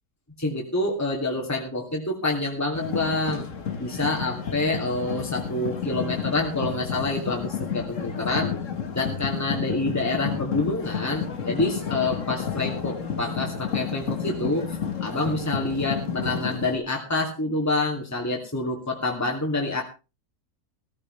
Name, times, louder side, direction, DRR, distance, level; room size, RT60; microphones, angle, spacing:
voice 1, 0.4-3.5 3.8-8.5 8.9-19.8, left 2 dB, 10° left, -1 dB, 2.8 m, -27 dB
sound 1, 2.7-16.8, left 7 dB, 55° left, 1.8 m, -31 dB
16.5 x 15.0 x 3.3 m, 0.32 s
omnidirectional pair, 1.6 m